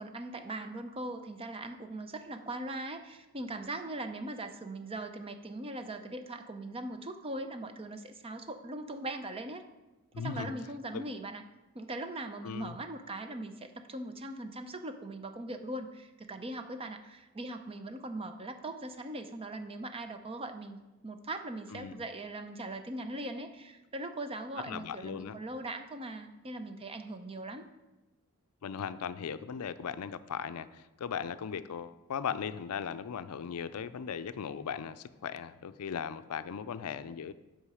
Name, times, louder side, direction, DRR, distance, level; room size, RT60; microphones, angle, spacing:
voice 1, 0.0-9.6 10.2-11.4 11.7-20.8 21.0-27.7, right 2 dB, 25° right, 7 dB, 0.6 m, -40 dB
voice 2, 10.1-10.5 10.9-11.0 12.4-12.8 21.7-22.1 24.7-25.4 28.6-37.3, left 7 dB, 75° left, 13 dB, 0.4 m, -38 dB
8.4 x 5.7 x 4.9 m, 1.1 s
head